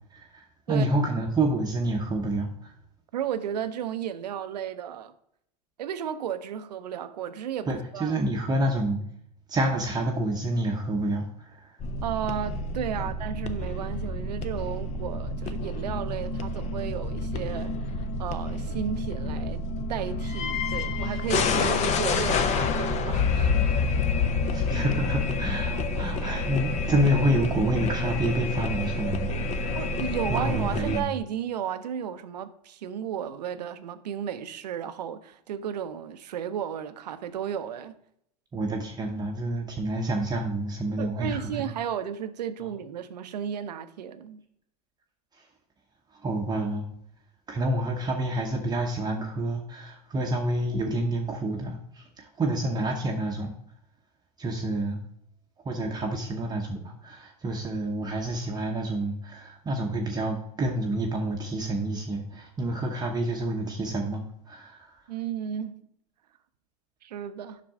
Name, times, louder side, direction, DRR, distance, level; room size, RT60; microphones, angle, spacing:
voice 1, 0.1-2.7 7.7-9.0 9.5-11.8 13.0-13.1 21.0-21.1 24.5-29.8 30.3-31.1 38.5-41.7 45.3-45.5 46.1-46.9 47.5-53.5 54.4-55.0 55.6-65.0, right 1 dB, 20° right, 0.8 m, -28 dB
voice 2, 3.1-5.1 5.8-8.2 12.0-19.6 19.9-23.8 24.5-24.7 29.7-37.9 41.0-44.4 65.1-65.8 67.0-67.6, right 9 dB, 80° right, 0.6 m, -34 dB
sound 1, 11.8-31.0, left 3 dB, 35° left, 0.7 m, -28 dB
7.4 x 6.0 x 3.6 m
hypercardioid pair, 100°, 21 cm